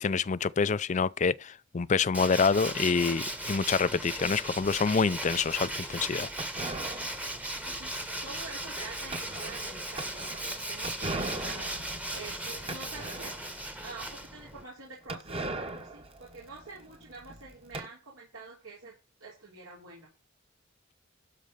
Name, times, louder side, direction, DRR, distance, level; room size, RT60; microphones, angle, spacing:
voice 1, 0.0-6.3, left 5 dB, 35° left, 0.4 m, -27 dB
Tools, 2.1-14.6, right 1 dB, 5° right, 1.1 m, -37 dB
sound 1, 6.4-13.7 14.0-14.1 14.3-14.4 15.1-17.9, right 2 dB, 30° right, 1.2 m, -40 dB
voice 2, 7.6-13.3 13.8-15.4 15.7-18.9 19.2-20.1, right 3 dB, 85° right, 3.5 m, -46 dB
12.5 x 4.3 x 6.7 m
head